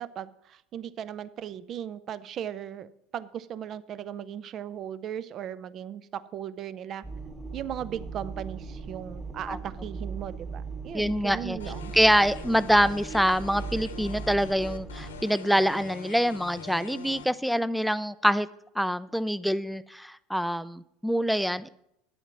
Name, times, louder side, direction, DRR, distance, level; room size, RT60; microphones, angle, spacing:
voice 1, 0.0-7.0 7.5-11.9, right 9 dB, 45° right, 16 dB, 0.6 m, -37 dB
sound 1, 7.0-15.2, right 4 dB, 25° right, 2.3 m, -39 dB
voice 2, 10.9-11.6 11.9-18.5 18.8-21.7, equal, ahead, 16 dB, 0.4 m, -25 dB
sound 2, 11.6-17.2, left 5 dB, 90° left, 1.0 m, -43 dB
9.5 x 8.0 x 6.0 m, 0.78 s
hypercardioid pair, 80°, 0 cm